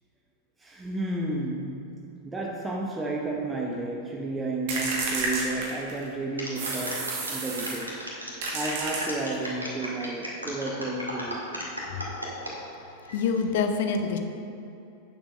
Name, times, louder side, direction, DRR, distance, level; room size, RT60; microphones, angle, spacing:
voice 1, 0.6-8.0 8.5-11.6, right 2 dB, 15° right, -1 dB, 1.0 m, -32 dB
sound 1, 4.7-6.1 6.6-7.9 8.4-9.5, right 3 dB, 50° right, 1.8 m, -31 dB
sound 2, 6.4-12.5 13.0-13.4, equal, 90° right, 2.0 m, -36 dB
voice 2, 12.9-14.2, left 5 dB, 55° left, 6 dB, 0.8 m, -27 dB
8.9 x 7.4 x 5.2 m, 2.8 s
figure-of-eight pair, 90°, 0 cm